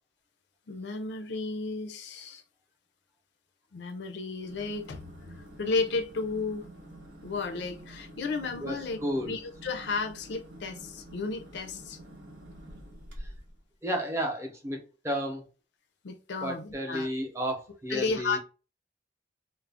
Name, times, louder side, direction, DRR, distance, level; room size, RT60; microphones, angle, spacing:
voice 1, 0.7-2.4 3.7-6.7 7.2-9.0 9.3-12.0 16.0-17.1 17.9-18.4, left 4 dB, 65° left, 0.4 m, -33 dB
sound 1, 4.4-13.6, right 1 dB, 75° right, 1.0 m, -48 dB
voice 2, 8.6-9.4 13.2-13.3 13.8-15.4 16.4-18.4, equal, 15° right, 0.6 m, -32 dB
2.4 x 2.0 x 3.3 m
head